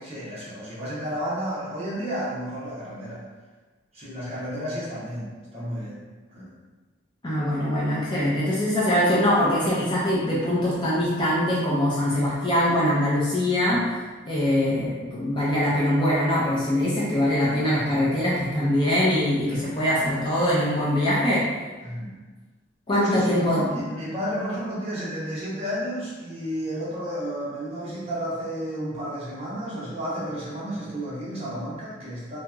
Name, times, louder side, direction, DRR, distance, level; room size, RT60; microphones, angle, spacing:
voice 1, 0.0-3.2 3.9-6.0 6.3-6.5 7.9-8.1 13.6-13.8 19.5-19.7 21.8-22.2 22.9-32.4, equal, 30° right, -8 dB, 0.8 m, -32 dB
voice 2, 7.2-14.0 14.3-21.4 22.9-23.8, left 1 dB, 25° left, -7 dB, 0.5 m, -23 dB
2.9 x 2.7 x 2.3 m, 1.3 s
head